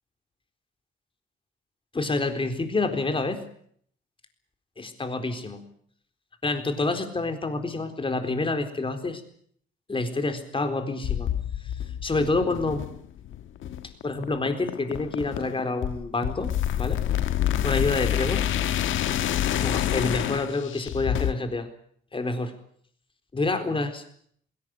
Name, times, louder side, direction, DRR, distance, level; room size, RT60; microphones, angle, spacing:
voice 1, 1.9-3.4 4.8-5.6 6.4-9.2 9.9-11.3 12.0-12.8 14.0-17.0 17.6-18.5 19.6-21.7 22.1-22.5 23.3-24.0, left 3 dB, 25° left, 7 dB, 4.1 m, -28 dB
sound 1, 11.0-21.3, left 11 dB, 80° left, 1.4 m, -28 dB
20.5 x 18.0 x 9.0 m, 0.62 s
cardioid pair, 90°, 20 cm